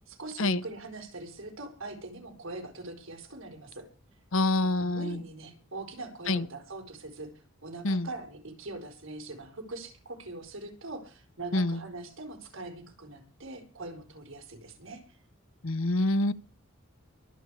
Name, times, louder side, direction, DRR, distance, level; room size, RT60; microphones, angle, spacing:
voice 1, 0.1-3.8 4.8-7.3 7.6-15.2, right 2 dB, 70° right, 4.4 m, -42 dB
voice 2, 4.3-5.2 6.3-6.5 7.8-8.1 11.5-11.8 15.6-16.3, left 2 dB, 70° left, 0.8 m, -26 dB
23.5 x 8.1 x 4.8 m
head